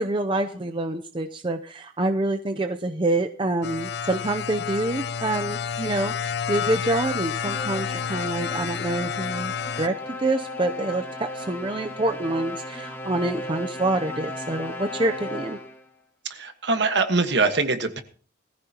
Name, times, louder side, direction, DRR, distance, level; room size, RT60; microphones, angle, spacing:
voice 1, 0.0-15.6, right 2 dB, 25° right, 6 dB, 0.6 m, -27 dB
sound 1, 3.6-9.9, left 7 dB, 55° left, 0.5 m, -30 dB
sound 2, 7.4-15.9, left 1 dB, 10° left, 1.6 m, -36 dB
voice 2, 16.3-18.0, right 3 dB, 60° right, 8 dB, 1.5 m, -23 dB
20.0 x 14.5 x 2.9 m, 0.43 s
head